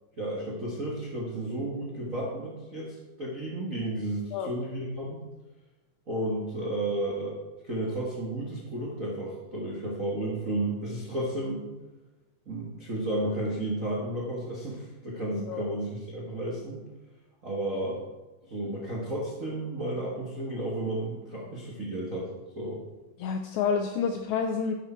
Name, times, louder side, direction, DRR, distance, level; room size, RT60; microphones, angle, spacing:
voice 1, 0.2-5.2 6.1-7.4 7.6-11.7 12.5-16.8 17.4-18.0 18.5-22.3 22.5-22.8, right 1 dB, 60° right, -5 dB, 0.8 m, -32 dB
voice 2, 15.3-15.6 23.2-24.7, left 6 dB, 85° left, 6 dB, 1.6 m, -29 dB
10.5 x 6.7 x 4.3 m, 1.1 s
omnidirectional pair, 3.8 m